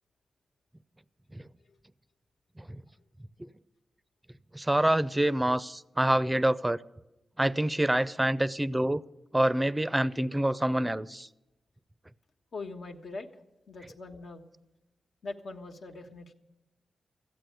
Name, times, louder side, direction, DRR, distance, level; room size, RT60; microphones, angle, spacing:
voice 1, 4.5-6.8 7.4-9.0 9.3-11.3, right 1 dB, 15° right, 0.5 m, -26 dB
voice 2, 12.5-13.3 13.7-14.5 15.2-16.3, left 3 dB, 75° left, 1.3 m, -41 dB
14.5 x 8.5 x 9.3 m
cardioid pair, 80°, 0 cm